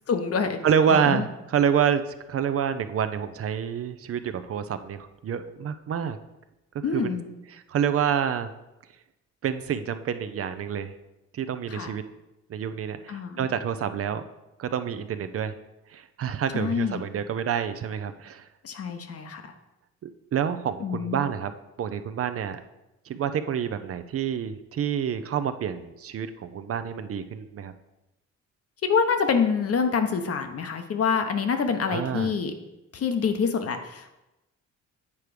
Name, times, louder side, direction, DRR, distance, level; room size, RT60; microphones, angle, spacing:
voice 1, 0.1-0.6 0.9-1.2 6.8-7.2 11.7-11.9 13.1-13.5 16.5-17.0 18.6-19.4 20.8-21.2 28.8-32.5 32.9-34.1, left 6 dB, 50° left, 7 dB, 1.0 m, -26 dB
voice 2, 0.6-6.2 6.9-7.2 7.5-8.5 9.4-10.9 11.3-12.0 12.5-14.3 14.6-15.5 15.9-18.5 20.0-21.5 21.8-22.6 23.1-27.7 31.9-32.3, right 8 dB, 50° right, 11 dB, 0.6 m, -28 dB
8.4 x 4.6 x 5.0 m, 0.96 s
cardioid pair, 90°, 30 cm